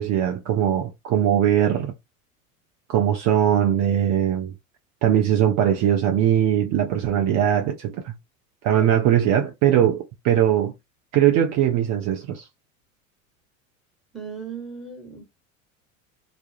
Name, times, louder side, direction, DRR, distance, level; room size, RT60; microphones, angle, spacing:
voice 1, 0.0-1.9 2.9-4.5 5.0-8.1 8.6-10.7 11.1-12.5, right 10 dB, 45° right, 0.5 m, -20 dB
voice 2, 14.1-15.2, right 5 dB, ahead, 1.2 m, -36 dB
2.3 x 2.1 x 2.8 m
hypercardioid pair, 85°, 41 cm